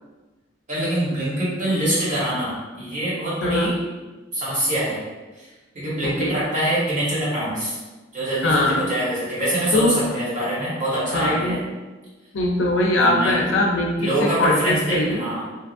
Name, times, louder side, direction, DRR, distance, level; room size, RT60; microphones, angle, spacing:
voice 1, 0.7-3.8 4.3-5.0 5.3-7.8 8.1-11.6 13.0-13.5 14.0-15.5, right 1 dB, 40° right, -9 dB, 1.3 m, -24 dB
voice 2, 3.4-3.7 6.0-6.3 8.4-8.8 9.7-10.0 11.1-11.6 12.3-15.2, left 1 dB, 75° left, 0 dB, 0.5 m, -21 dB
2.8 x 2.4 x 2.5 m, 1.2 s
head